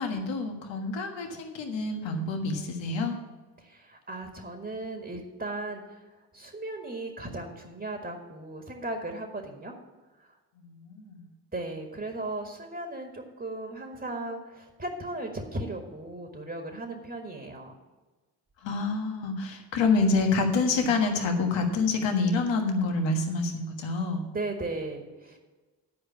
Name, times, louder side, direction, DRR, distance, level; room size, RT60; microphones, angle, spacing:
voice 1, 0.0-3.1 10.6-11.2 18.6-24.2, left 3 dB, 75° left, 3 dB, 1.5 m, -27 dB
voice 2, 3.6-6.0 6.3-9.7 10.2-10.4 11.5-17.8 24.3-25.4, right 2 dB, 25° right, 3 dB, 1.8 m, -36 dB
10.5 x 4.9 x 8.2 m, 1.2 s
hypercardioid pair, 45°, 45 cm